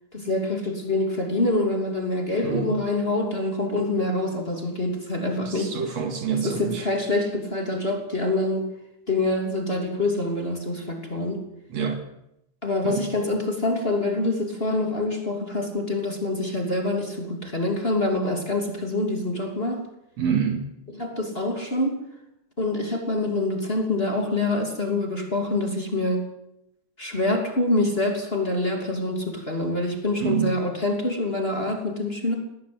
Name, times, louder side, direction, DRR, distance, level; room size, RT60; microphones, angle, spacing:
voice 1, 0.1-5.7 6.3-8.7 9.1-11.4 12.6-19.9 20.9-22.0 22.6-26.2 27.0-32.3, left 2 dB, 20° left, 2 dB, 3.0 m, -26 dB
voice 2, 5.5-6.8 11.7-12.0 12.8-13.1 20.2-20.7 30.2-30.5, right 7 dB, 60° right, 6 dB, 3.3 m, -26 dB
19.0 x 18.5 x 8.0 m, 0.82 s
omnidirectional pair, 3.4 m